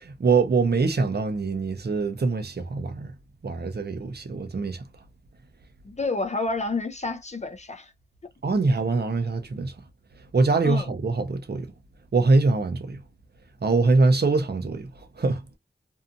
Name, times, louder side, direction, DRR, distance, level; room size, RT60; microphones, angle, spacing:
voice 1, 0.0-3.1 3.4-4.8 8.4-9.7 10.3-11.7 12.1-13.0 13.6-14.9 15.2-15.4, right 3 dB, 60° right, 0.7 m, -23 dB
voice 2, 5.8-7.9 10.6-10.9, left 3 dB, 40° left, 0.5 m, -29 dB
2.7 x 2.4 x 2.6 m
wide cardioid pair, 55°, 19 cm